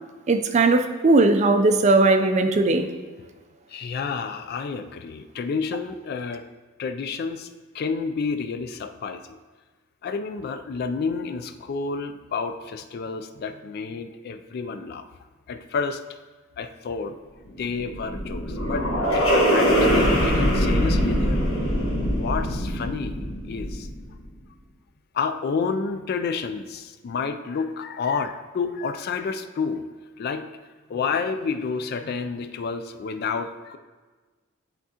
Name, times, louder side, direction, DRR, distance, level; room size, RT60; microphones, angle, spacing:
voice 1, 0.3-2.9, right 2 dB, 35° right, 6 dB, 0.4 m, -18 dB
voice 2, 3.7-6.4 6.8-7.5 7.7-9.4 10.0-15.1 15.5-16.0 16.6-17.2 17.6-18.9 19.1-21.4 22.1-23.2 23.5-23.9 25.1-29.9 30.2-30.5 30.9-33.8, left 5 dB, 50° left, 9 dB, 0.3 m, -30 dB
sound 1, 17.5-24.0, equal, 80° left, 1.4 m, -22 dB
10.0 x 3.6 x 2.8 m, 1.3 s
head